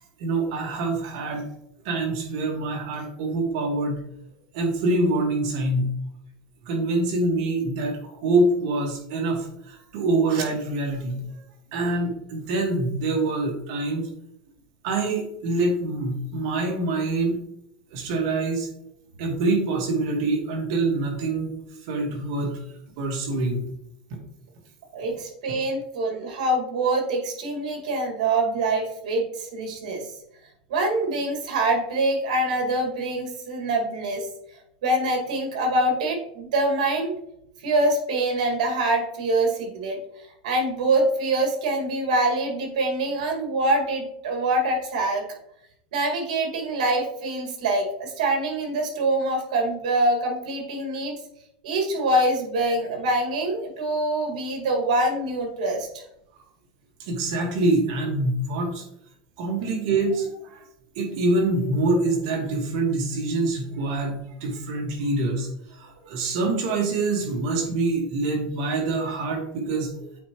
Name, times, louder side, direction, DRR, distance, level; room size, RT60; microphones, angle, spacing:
voice 1, 0.2-1.4 1.9-4.0 4.5-5.9 6.7-11.4 11.7-14.1 14.8-17.4 17.9-18.7 19.2-21.6 21.9-22.6 23.0-23.6 25.5-25.6 57.0-58.8 59.4-60.6 61.0-70.1, right 2 dB, 60° right, 1 dB, 1.7 m, -25 dB
voice 2, 24.9-30.1 30.7-34.3 34.8-37.1 37.6-40.0 40.4-45.2 45.9-51.2 51.6-55.9, right 2 dB, 80° right, 1 dB, 2.1 m, -24 dB
8.3 x 4.6 x 3.1 m, 0.77 s
supercardioid pair, 150°, 4 cm